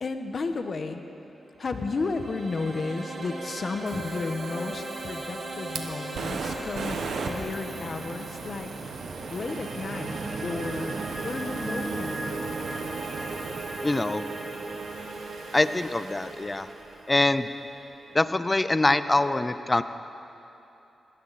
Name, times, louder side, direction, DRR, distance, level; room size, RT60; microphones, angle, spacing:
voice 1, 0.0-1.0 1.6-7.0 7.3-8.7 9.3-11.0 11.2-12.4, left 3 dB, 50° left, 7 dB, 1.2 m, -33 dB
sound 1, 1.5-18.6, right 2 dB, 60° right, 3.0 m, -38 dB
Fire, 3.9-17.0, right 4 dB, 80° right, 1.3 m, -38 dB
voice 2, 13.8-14.2 15.5-16.7 17.1-17.5 18.1-19.8, left 2 dB, 20° left, 12 dB, 0.6 m, -24 dB
20.5 x 16.0 x 4.2 m, 2.9 s
cardioid pair, 75°, 0 cm